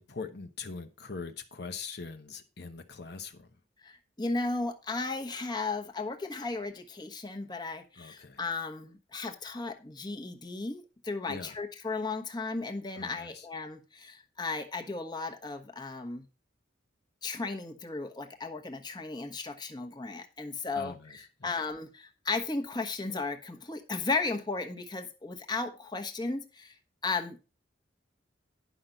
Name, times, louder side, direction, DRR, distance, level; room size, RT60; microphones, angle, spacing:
voice 1, 0.0-3.5 8.0-8.4 11.3-11.6 12.9-13.5 20.7-21.6, left 4 dB, 60° left, 1.0 m, -42 dB
voice 2, 3.8-16.2 17.2-26.7 27.0-27.4, left 3 dB, 20° left, 1.1 m, -35 dB
10.5 x 5.8 x 5.2 m
head